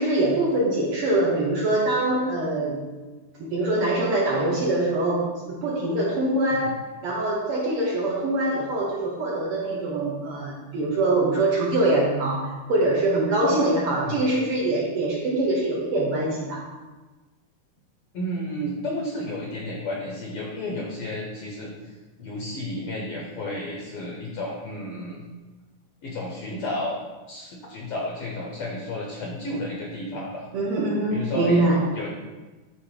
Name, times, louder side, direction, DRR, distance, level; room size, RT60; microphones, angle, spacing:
voice 1, 0.0-2.8 3.4-16.6 30.5-31.8, right 2 dB, 70° right, -3 dB, 1.4 m, -24 dB
voice 2, 18.1-25.2 26.0-27.0 27.3-30.5 31.1-31.6 31.9-32.1, left 1 dB, 70° left, -1 dB, 1.3 m, -32 dB
8.3 x 2.9 x 4.9 m, 1.2 s
omnidirectional pair, 3.5 m